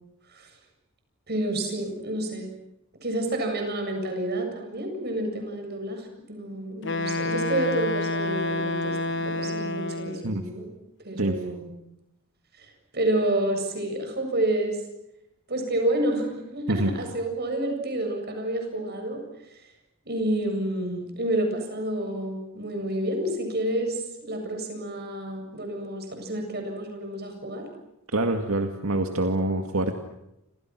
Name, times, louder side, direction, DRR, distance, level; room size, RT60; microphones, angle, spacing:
voice 1, 1.3-2.5 3.0-10.7 11.0-11.7 12.6-14.8 15.5-19.2 20.1-27.6, right 1 dB, 50° right, 4 dB, 7.7 m, -29 dB
Wind instrument woodwind instrument, 6.8-10.3, left 2 dB, 60° left, 1.4 m, -28 dB
voice 2, 28.1-30.0, right 1 dB, 80° right, 4 dB, 2.1 m, -25 dB
29.5 x 27.5 x 6.2 m, 0.86 s
head